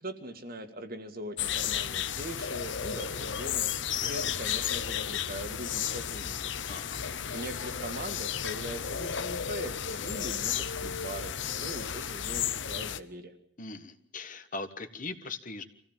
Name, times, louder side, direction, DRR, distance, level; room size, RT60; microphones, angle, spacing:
voice 1, 0.0-6.5 7.3-13.4, right 1 dB, 50° right, 6 dB, 2.1 m, -41 dB
sound 1, 1.4-13.0, left 8 dB, 65° left, 0.8 m, -33 dB
voice 2, 6.7-7.1 13.6-15.6, left 3 dB, 45° left, 9 dB, 1.4 m, -40 dB
26.0 x 16.0 x 7.4 m, 0.71 s
head